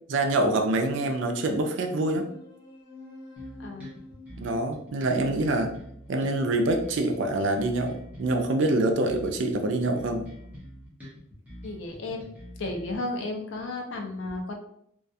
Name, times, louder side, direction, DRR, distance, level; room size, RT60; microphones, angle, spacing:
voice 1, 0.1-2.3 4.4-5.7 6.1-10.3, right 2 dB, 60° right, 4 dB, 0.4 m, -25 dB
sound 1, 1.7-6.7, left 2 dB, 10° left, 1.1 m, -48 dB
sound 2, 3.4-13.0, equal, 5° right, 0.6 m, -45 dB
voice 2, 11.6-12.3 12.6-14.5, left 2 dB, 65° left, 3 dB, 0.4 m, -33 dB
2.3 x 2.2 x 2.6 m, 0.71 s
head